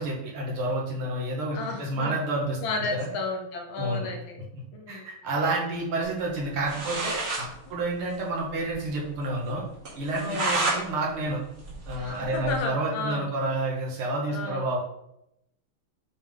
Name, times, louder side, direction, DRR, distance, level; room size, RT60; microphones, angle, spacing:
voice 1, 0.0-2.6 3.0-3.1 3.8-4.1 4.9-9.6 10.0-11.4 11.9-14.8, right 2 dB, 80° right, -3 dB, 2.3 m, -29 dB
voice 2, 1.5-2.2 2.6-4.4 4.7-5.1 10.2-10.6 11.9-13.3 14.3-14.6, left 3 dB, 70° left, 3 dB, 1.7 m, -32 dB
sound 1, 6.4-6.5 6.6-7.5 7.8-7.9 8.1-8.2 8.6-8.7 9.1-9.2 9.9-10.8 11.2-12.5, right 2 dB, 55° right, 2.3 m, -30 dB
7.1 x 3.6 x 3.6 m, 0.82 s
omnidirectional pair, 2.4 m